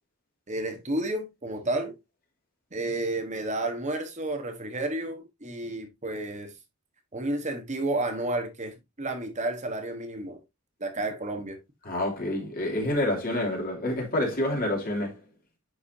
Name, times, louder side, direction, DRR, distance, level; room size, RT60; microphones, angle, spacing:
voice 1, 0.5-1.9 2.7-6.5 7.1-10.4 10.8-11.6, right 2 dB, 35° right, 1.2 m, -31 dB
voice 2, 11.8-15.2, left 1 dB, 45° left, 2.9 m, -28 dB
9.8 x 4.8 x 2.7 m
head